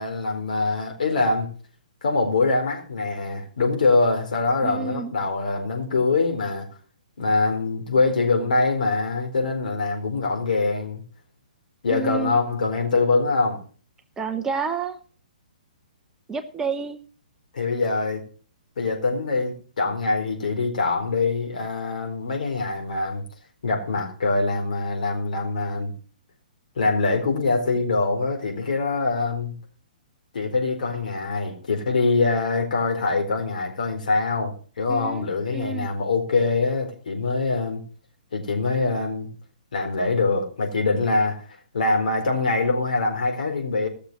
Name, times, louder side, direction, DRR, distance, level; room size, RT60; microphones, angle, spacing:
voice 1, 0.0-1.5 2.0-6.7 7.2-11.0 11.8-13.6 17.5-18.2 18.8-23.2 23.6-25.9 26.8-29.6 30.3-37.8 38.3-39.3 39.7-41.5 41.7-43.9, left 3 dB, 65° left, 4.1 m, -24 dB
voice 2, 4.6-5.1 11.9-12.4 14.2-15.0 16.3-17.0 34.9-35.9, right 5 dB, 10° right, 0.9 m, -29 dB
17.5 x 6.7 x 6.0 m
figure-of-eight pair, 125°, 5 cm